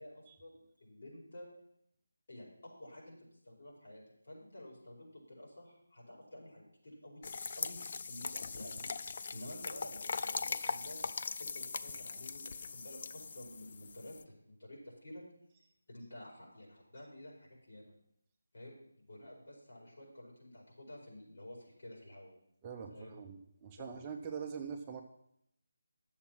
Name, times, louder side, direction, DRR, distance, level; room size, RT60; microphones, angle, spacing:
voice 1, 0.0-1.5 2.3-7.2 7.5-11.0 11.4-15.2 15.9-17.9 18.5-22.3 22.9-23.2 23.8-24.0, left 1 dB, 65° left, -4 dB, 4.9 m, -51 dB
sound 1, 7.2-14.2, left 5 dB, 40° left, 0.4 m, -40 dB
voice 2, 22.6-25.0, right 6 dB, 15° right, 2 dB, 0.6 m, -43 dB
10.0 x 7.3 x 6.0 m, 0.75 s
figure-of-eight pair, 170°, 0 cm